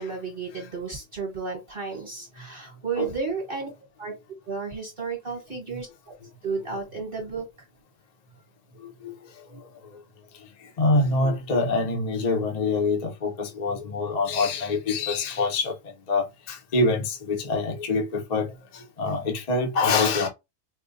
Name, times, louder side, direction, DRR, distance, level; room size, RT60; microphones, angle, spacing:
voice 1, 0.0-3.7 4.0-4.1 4.5-5.9 6.4-7.5, right 4 dB, 40° right, 1.2 m, -32 dB
voice 2, 10.8-15.7 16.1-18.5 19.0-20.3, left 3 dB, 40° left, 0.6 m, -25 dB
4.4 x 2.2 x 2.6 m
omnidirectional pair, 1.6 m